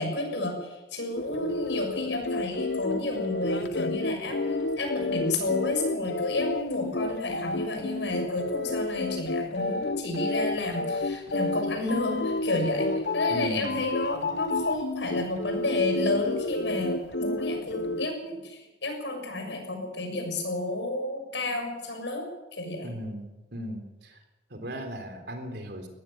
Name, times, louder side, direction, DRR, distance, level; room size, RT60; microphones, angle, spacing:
voice 1, 0.0-22.3 22.5-22.9, left 2 dB, 85° left, 4 dB, 6.7 m, -31 dB
sound 1, 1.2-18.1, left 2 dB, 70° left, 1.0 m, -30 dB
voice 2, 13.3-13.8 22.8-24.2 24.5-25.9, equal, 65° right, 6 dB, 3.8 m, -37 dB
19.5 x 15.5 x 8.9 m, 1.1 s
head